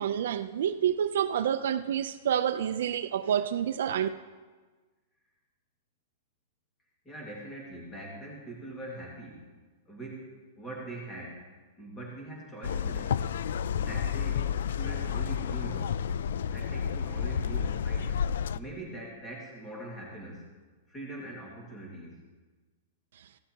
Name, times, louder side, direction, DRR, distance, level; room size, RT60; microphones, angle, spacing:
voice 1, 0.0-4.1 23.2-23.3, right 9 dB, 65° right, 0.4 m, -28 dB
voice 2, 7.1-9.4 9.9-10.3 10.6-11.5 11.8-13.2 13.7-16.0 16.5-18.1 18.5-20.4 20.9-22.2, right 2 dB, 10° left, 1.9 m, -42 dB
sound 1, 12.6-18.6, left 8 dB, 75° left, 0.3 m, -30 dB
16.0 x 11.5 x 2.9 m
supercardioid pair, 180°, 0 cm